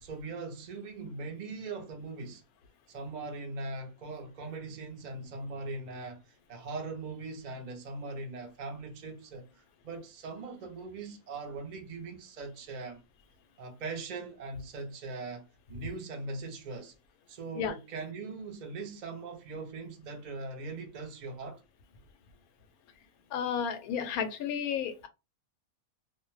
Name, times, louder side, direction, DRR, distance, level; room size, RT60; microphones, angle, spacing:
voice 1, 0.0-2.4 2.9-13.0 13.6-16.9 17.3-21.6, right 3 dB, 65° right, 0.4 m, -40 dB
voice 2, 23.3-25.1, left 7 dB, 90° left, 1.1 m, -32 dB
2.5 x 2.1 x 3.0 m
omnidirectional pair, 1.5 m